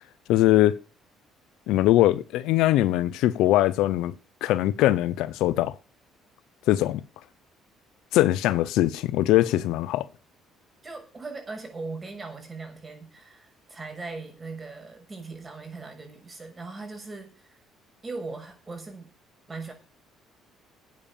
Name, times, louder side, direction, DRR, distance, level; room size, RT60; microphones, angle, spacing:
voice 1, 0.3-0.8 1.7-4.1 4.4-5.7 6.7-7.0 8.1-10.1, left 15 dB, 80° left, 0.8 m, -21 dB
voice 2, 10.8-17.6 18.0-19.1 19.5-19.7, right 3 dB, 25° right, 6.6 m, -39 dB
12.5 x 8.9 x 6.9 m
supercardioid pair, 80°, 0 cm